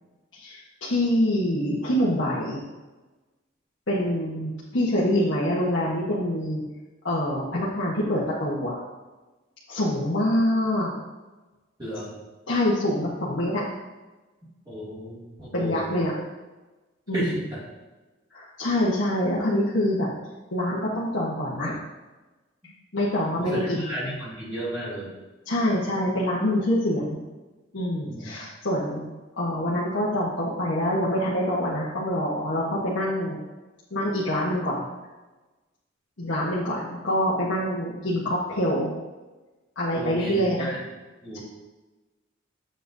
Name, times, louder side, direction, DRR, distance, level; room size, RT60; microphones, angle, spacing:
voice 1, 0.9-2.6 3.9-6.6 7.0-8.8 9.7-10.9 12.5-13.6 15.5-16.1 17.1-17.3 18.3-20.1 20.5-21.7 22.9-23.9 25.5-27.2 27.7-29.1 29.4-33.4 33.9-34.8 36.2-38.9 39.8-40.7 41.3-41.4, left 1 dB, 75° left, -7 dB, 1.2 m, -25 dB
voice 2, 11.8-12.1 14.7-16.0 17.1-17.6 23.4-25.1 28.0-28.3 39.9-40.8 41.2-41.4, right 1 dB, 20° right, -9 dB, 2.4 m, -33 dB
7.7 x 7.5 x 2.7 m, 1.2 s
head